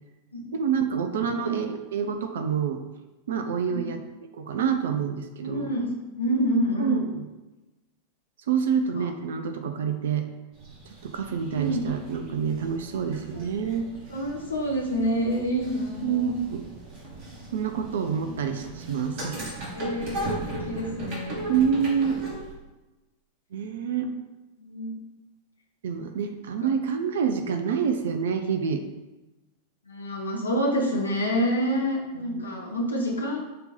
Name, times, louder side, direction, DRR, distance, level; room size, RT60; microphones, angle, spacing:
voice 1, 0.5-2.8 3.3-4.0 4.3-5.7 6.8-7.2 8.5-10.3 11.0-13.9 16.0-16.6 17.5-19.5 21.5-22.1 23.5-24.2 25.8-28.8 32.2-32.4, right 7 dB, 60° right, 8 dB, 0.8 m, -27 dB
voice 2, 5.4-5.9 6.2-7.0 9.0-9.1 11.5-11.9 13.3-13.4 14.1-16.3 19.7-21.7 24.6-24.9 29.9-33.4, equal, 80° left, -2 dB, 1.7 m, -28 dB
sound 1, 10.5-22.5, right 1 dB, 45° right, 2.4 m, -38 dB
11.0 x 3.8 x 4.4 m, 1.1 s
figure-of-eight pair, 90°, 0 cm